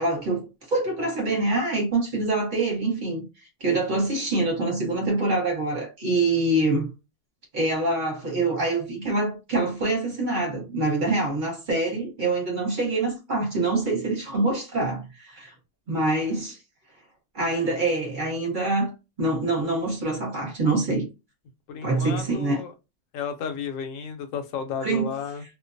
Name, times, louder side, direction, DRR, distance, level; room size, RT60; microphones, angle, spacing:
voice 1, 0.0-3.3 3.6-6.9 7.5-15.5 15.9-16.6 17.3-18.9 19.2-21.1 21.8-22.6 24.8-25.1, right 2 dB, 35° right, 0.9 m, -25 dB
voice 2, 21.7-22.7 23.1-25.4, left 7 dB, 70° left, 0.9 m, -33 dB
2.5 x 2.1 x 2.5 m
omnidirectional pair, 1.6 m